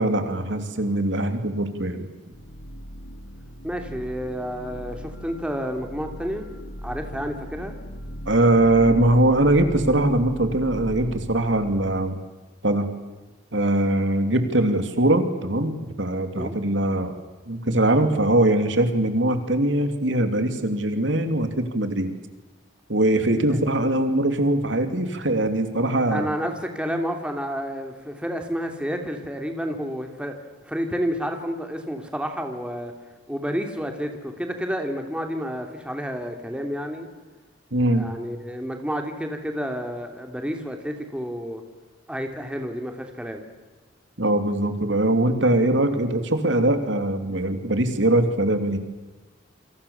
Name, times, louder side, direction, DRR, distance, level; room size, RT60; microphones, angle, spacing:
voice 1, 0.0-2.0 8.3-12.2 12.6-12.9 13.5-17.1 17.5-22.1 22.9-26.3 37.7-38.1 44.2-48.8, right 1 dB, 70° right, 7 dB, 3.0 m, -21 dB
sound 1, 2.3-12.1, equal, 70° left, 2.3 m, -38 dB
voice 2, 3.6-6.5 6.8-7.7 16.3-16.6 23.5-23.6 26.1-30.3 30.6-32.9 33.3-37.1 37.9-41.6 42.1-43.4, equal, 5° right, 4 dB, 3.0 m, -30 dB
28.5 x 26.0 x 7.2 m, 1.2 s
head